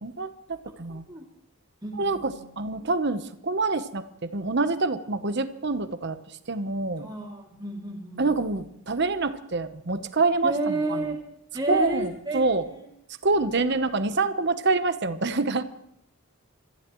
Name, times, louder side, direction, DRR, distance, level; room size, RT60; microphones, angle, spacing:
voice 1, 0.0-1.0 2.0-4.1 4.3-6.2 6.5-7.1 8.2-10.7 11.7-12.6 13.2-15.6, right 3 dB, 50° right, 10 dB, 1.0 m, -26 dB
voice 2, 0.9-1.2 1.8-2.5 7.0-8.3 10.4-11.2 11.5-12.9 13.3-13.7, right 2 dB, 20° right, -1 dB, 2.7 m, -32 dB
27.0 x 15.0 x 3.1 m, 0.78 s
head